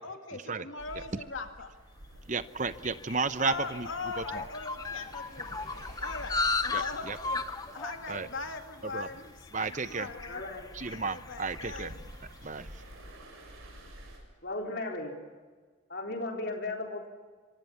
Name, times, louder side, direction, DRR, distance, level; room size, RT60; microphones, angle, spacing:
voice 1, 0.0-1.7 3.4-7.4 7.7-9.3 9.6-10.4 10.9-12.0, left 4 dB, 70° left, 5 dB, 2.2 m, -40 dB
sound 1, 0.8-14.2, equal, 90° right, 7.5 m, -50 dB
sound 2, 2.1-12.7, left 3 dB, 20° left, 0.8 m, -37 dB
voice 2, 2.3-3.9 4.2-4.4 6.7-7.2 8.1-8.3 8.9-9.1 9.5-10.1 10.8-11.9 12.4-12.7, right 4 dB, 35° right, 12 dB, 0.9 m, -33 dB
voice 3, 10.3-10.7 14.4-15.1 15.9-17.1, left 2 dB, 50° left, 1 dB, 3.9 m, -36 dB
25.5 x 24.0 x 7.2 m, 1.4 s
head